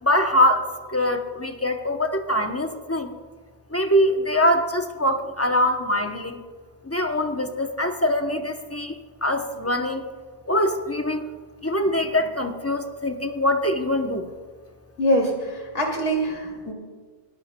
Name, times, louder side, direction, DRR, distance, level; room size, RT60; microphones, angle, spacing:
voice 1, 0.0-3.1 3.7-6.4 6.8-8.9 9.2-10.1 10.5-11.3 11.6-14.3, left 1 dB, 15° left, 5 dB, 0.6 m, -23 dB
voice 2, 15.0-16.7, equal, 85° left, 0 dB, 2.8 m, -24 dB
20.5 x 13.0 x 2.2 m, 1.5 s
omnidirectional pair, 1.2 m